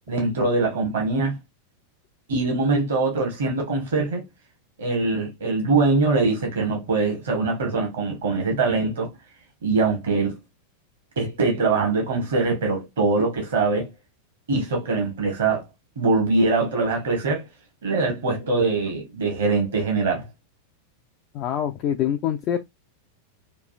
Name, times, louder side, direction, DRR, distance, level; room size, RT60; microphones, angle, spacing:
voice 1, 0.1-1.4 2.3-4.2 4.8-9.1 9.6-10.4 11.2-13.9 14.5-15.6 16.0-17.5 17.8-20.3, right 3 dB, 60° right, 0.9 m, -23 dB
voice 2, 21.3-22.6, left 10 dB, 40° left, 0.3 m, -25 dB
3.1 x 2.4 x 2.3 m
figure-of-eight pair, 90°, 0 cm